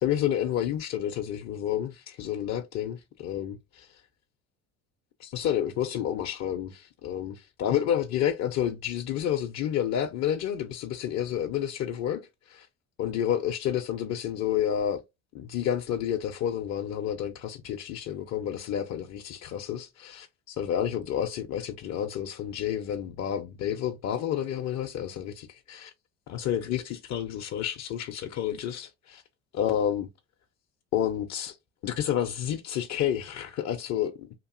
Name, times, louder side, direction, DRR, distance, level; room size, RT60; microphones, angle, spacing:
voice 1, 0.0-4.0 5.2-12.7 13.0-15.0 15.3-25.9 26.3-29.2 29.5-30.1 30.9-31.6 31.8-34.3, left 10 dB, 45° left, 0.5 m, -30 dB
2.9 x 2.5 x 2.4 m
supercardioid pair, 75°, 37 cm